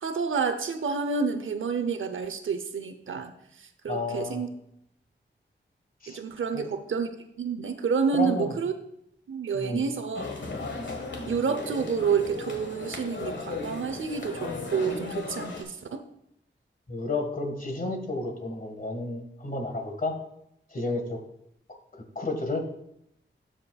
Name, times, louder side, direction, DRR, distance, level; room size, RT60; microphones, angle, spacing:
voice 1, 0.0-3.3 3.6-4.5 6.1-7.1 7.4-8.7 9.3-10.2 11.3-16.0 22.5-22.6, right 5 dB, 80° right, 9 dB, 0.7 m, -29 dB
voice 2, 3.9-4.4 6.0-6.2 6.5-6.7 8.1-8.5 9.5-9.8 16.9-20.1 20.7-21.2 21.9-22.6, left 2 dB, 45° left, 4 dB, 1.7 m, -31 dB
sound 1, 10.1-15.6, left 3 dB, 65° left, 1.5 m, -36 dB
13.0 x 5.2 x 2.3 m, 0.76 s
cardioid pair, 60°, 20 cm